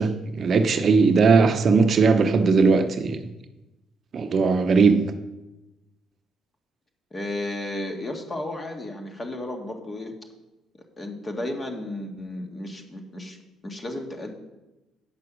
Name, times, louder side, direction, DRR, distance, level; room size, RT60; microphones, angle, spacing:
voice 1, 0.0-3.2 4.1-5.0, right 4 dB, 50° right, 8 dB, 0.8 m, -19 dB
voice 2, 7.1-10.1 11.0-13.4 13.6-14.4, left 1 dB, 30° left, 3 dB, 1.9 m, -33 dB
8.8 x 6.1 x 6.1 m, 1.0 s
supercardioid pair, 75°, 0 cm